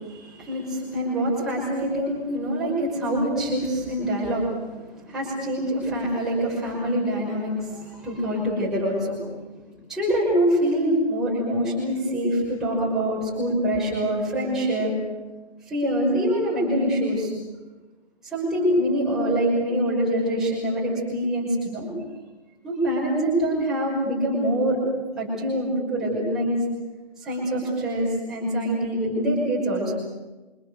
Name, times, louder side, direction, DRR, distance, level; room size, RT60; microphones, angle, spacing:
voice 1, 0.0-9.2 9.9-15.0 15.7-17.3 18.2-21.9 22.6-24.8 25.1-26.6 27.2-29.9, equal, ahead, -7 dB, 5.9 m, -25 dB
29.0 x 25.5 x 6.7 m, 1.1 s
figure-of-eight pair, 160°, 33 cm